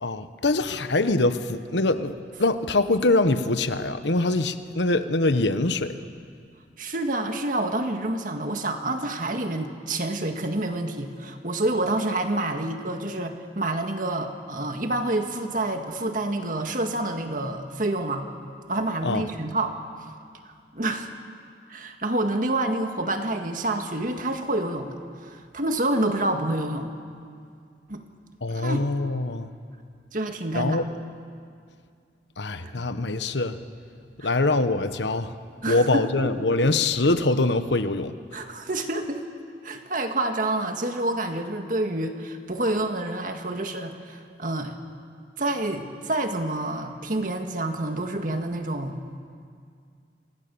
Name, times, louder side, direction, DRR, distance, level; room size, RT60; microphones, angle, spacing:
voice 1, 0.0-2.1 2.4-5.9 19.0-19.3 28.4-29.5 30.5-30.9 32.4-33.6 34.2-35.4 35.7-38.2, left 2 dB, 80° left, 10 dB, 1.2 m, -23 dB
voice 2, 6.8-18.3 18.7-19.8 20.7-21.1 21.7-26.9 27.9-28.0 28.5-28.8 30.1-30.8 32.6-32.7 34.2-34.3 35.6-36.5 38.3-39.3 39.6-44.7 45.4-49.1, right 2 dB, 45° right, 5 dB, 1.9 m, -28 dB
26.0 x 25.5 x 7.1 m, 2.3 s
head